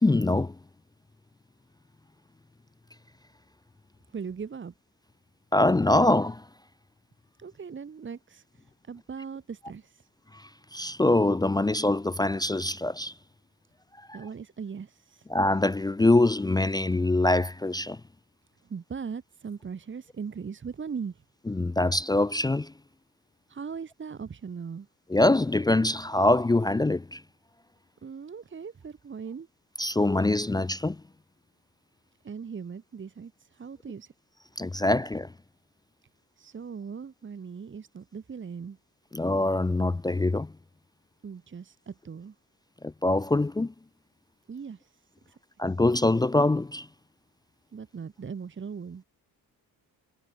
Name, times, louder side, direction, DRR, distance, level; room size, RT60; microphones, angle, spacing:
voice 1, 0.0-0.5 5.5-6.4 10.7-13.1 15.3-18.0 21.5-22.7 25.1-27.2 29.8-31.0 34.6-35.3 39.1-40.5 42.8-43.7 45.6-46.9, left 2 dB, 10° left, 0.6 m, -24 dB
voice 2, 4.1-4.7 7.4-10.1 14.1-15.3 18.6-21.2 23.5-24.9 28.0-29.5 32.2-34.1 36.4-38.8 41.2-42.3 44.5-45.4 47.7-49.0, right 6 dB, 35° right, 2.7 m, -39 dB
cardioid pair, 150°, 35 cm